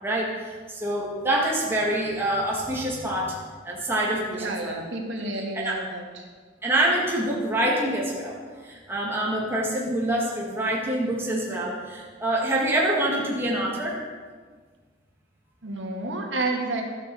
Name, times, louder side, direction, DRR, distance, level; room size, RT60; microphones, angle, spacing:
voice 1, 0.0-3.4 3.6-4.8 5.5-5.8 6.6-14.0, right 1 dB, 15° right, -4 dB, 2.1 m, -26 dB
voice 2, 4.4-6.3 15.6-16.8, right 2 dB, 75° right, 1 dB, 2.1 m, -30 dB
13.0 x 8.4 x 7.0 m, 1.5 s
head